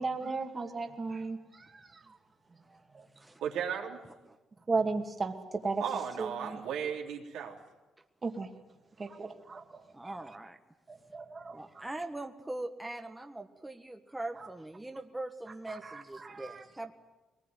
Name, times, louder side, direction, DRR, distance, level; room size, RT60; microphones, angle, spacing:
voice 1, 0.0-2.2 2.9-3.0 4.7-5.3 5.6-5.8 6.2-6.6 8.2-8.5 9.0-10.2 10.9-11.8 14.4-14.5 15.7-16.6, right 3 dB, 30° right, 4 dB, 2.4 m, -36 dB
voice 2, 3.4-4.0 5.8-7.6, right 8 dB, 85° right, 0 dB, 3.4 m, -35 dB
voice 3, 9.9-10.6 11.5-16.9, right 2 dB, 10° right, 5 dB, 1.6 m, -41 dB
21.5 x 20.0 x 9.3 m, 1.1 s
cardioid pair, 90°, 0 cm